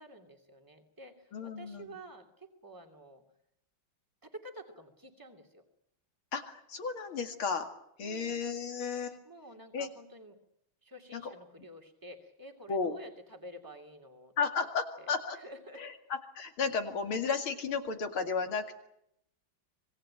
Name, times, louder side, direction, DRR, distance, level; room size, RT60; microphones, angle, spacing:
voice 1, 0.0-3.2 4.2-5.6 8.0-8.4 9.2-10.4 10.8-14.7 15.0-15.9, right 1 dB, 10° right, 4 dB, 2.7 m, -50 dB
voice 2, 1.3-2.0 6.3-7.7 8.0-9.2 9.7-9.9 11.1-11.2 12.7-12.9 14.4-15.4 15.8-18.8, left 5 dB, 85° left, 5 dB, 3.0 m, -33 dB
25.5 x 19.0 x 9.0 m, 0.76 s
omnidirectional pair, 2.2 m